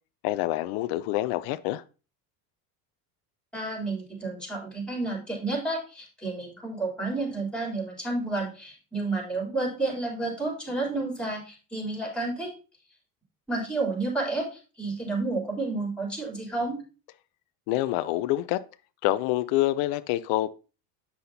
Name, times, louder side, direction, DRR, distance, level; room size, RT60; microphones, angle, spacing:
voice 1, 0.2-1.8 17.7-18.6 19.0-20.5, left 16 dB, 55° left, 0.6 m, -26 dB
voice 2, 3.5-12.5 13.5-16.8, right 2 dB, ahead, 3.5 m, -30 dB
8.5 x 5.6 x 2.7 m
hypercardioid pair, 85°, 50 cm